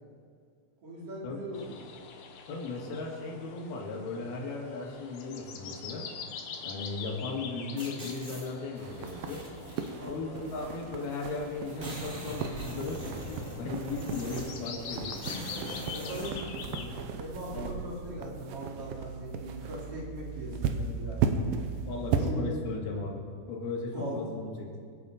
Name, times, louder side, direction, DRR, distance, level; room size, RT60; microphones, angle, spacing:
voice 1, 0.8-1.8 10.0-10.4 15.9-21.2 22.2-22.4 23.9-24.2, equal, 40° right, -5 dB, 3.9 m, -40 dB
sound 1, 1.5-16.9, left 6 dB, 65° left, 2.0 m, -45 dB
voice 2, 2.5-6.1 6.6-9.4 10.1-15.2 17.5-17.8 21.9-24.8, left 3 dB, 90° left, -1 dB, 3.9 m, -36 dB
sound 2, 7.8-8.5 9.1-9.9 10.8-10.9 11.2-11.3 11.5-14.6 15.1-16.3, equal, 25° right, 1.9 m, -42 dB
sound 3, 8.8-22.3, right 6 dB, 80° right, 2.7 m, -36 dB
24.5 x 8.2 x 5.0 m, 2.1 s
omnidirectional pair, 4.3 m